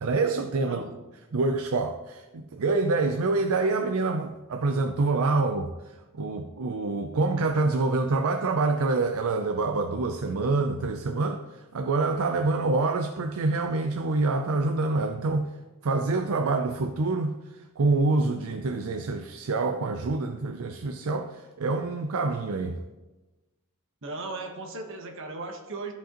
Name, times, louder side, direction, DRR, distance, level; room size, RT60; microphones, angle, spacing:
voice 1, 0.0-0.8 1.3-15.5 15.8-17.3 17.8-22.8, right 3 dB, 75° right, 0.5 m, -26 dB
voice 2, 0.6-1.0 24.0-25.9, right 3 dB, 60° right, 1.2 m, -37 dB
14.0 x 5.3 x 2.9 m
head